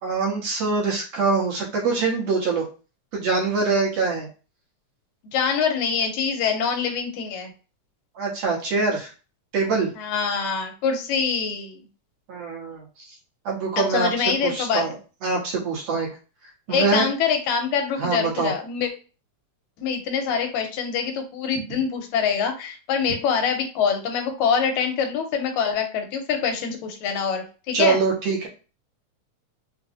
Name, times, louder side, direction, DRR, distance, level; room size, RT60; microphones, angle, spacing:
voice 1, 0.0-2.7 3.1-4.3 8.2-9.1 9.5-9.9 12.3-12.8 13.5-15.0 15.2-16.1 16.7-17.1 18.0-18.5 27.7-28.5, right 4 dB, 65° right, -3 dB, 2.0 m, -24 dB
voice 2, 5.3-7.5 10.0-11.8 13.8-14.9 16.7-18.9 19.8-28.0, left 6 dB, 80° left, 4 dB, 2.1 m, -25 dB
5.0 x 2.0 x 2.7 m, 0.34 s
omnidirectional pair, 3.3 m